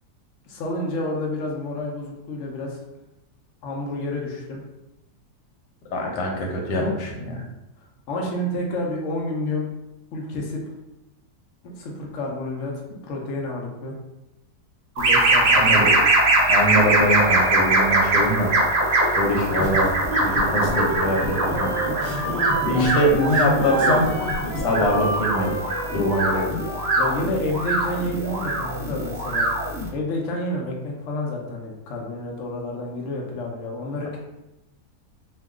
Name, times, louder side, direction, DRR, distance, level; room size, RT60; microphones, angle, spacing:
voice 1, 0.5-2.8 3.6-4.6 6.7-6.9 8.1-9.7 10.1-10.6 11.6-13.9 15.0-15.9 22.7-22.9 27.0-29.5 29.9-34.2, left 1 dB, 65° left, -1 dB, 0.8 m, -29 dB
voice 2, 5.9-7.4 15.5-15.9 16.5-18.5 19.2-19.9 20.2-21.7 22.7-24.1 24.6-25.5 25.9-26.5, equal, 85° left, 0 dB, 1.3 m, -23 dB
sound 1, 15.0-29.9, right 2 dB, 60° right, 0.9 m, -22 dB
sound 2, 19.5-24.9, equal, 80° right, 0.3 m, -31 dB
Wind instrument woodwind instrument, 20.2-27.0, right 2 dB, 50° left, 0.3 m, -31 dB
2.8 x 2.3 x 3.5 m, 0.94 s
omnidirectional pair, 1.8 m